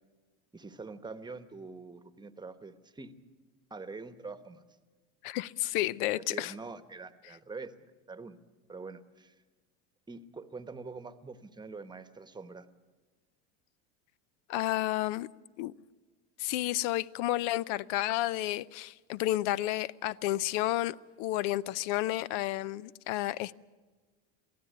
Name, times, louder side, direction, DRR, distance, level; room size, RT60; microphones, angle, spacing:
voice 1, 0.5-3.1 3.7-4.6 5.6-5.7 6.1-7.7 8.1-8.4 8.7-9.3 10.1-12.7, right 4 dB, 10° right, 11 dB, 1.1 m, -44 dB
voice 2, 5.2-6.5 14.5-15.3 15.6-15.7 16.4-23.5, left 15 dB, 70° left, 19 dB, 0.7 m, -31 dB
23.0 x 15.5 x 9.2 m, 1.3 s
supercardioid pair, 115°, 37 cm